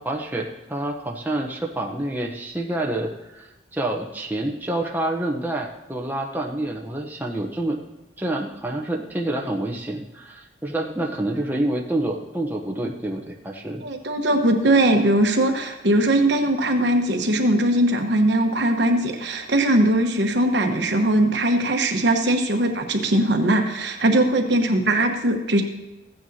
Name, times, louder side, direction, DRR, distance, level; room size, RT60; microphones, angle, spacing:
voice 1, 0.0-7.8 8.2-13.8, right 1 dB, 10° right, -1 dB, 0.7 m, -28 dB
voice 2, 13.8-25.6, right 1 dB, 65° right, 4 dB, 1.1 m, -20 dB
15.0 x 9.2 x 2.7 m, 1.0 s
head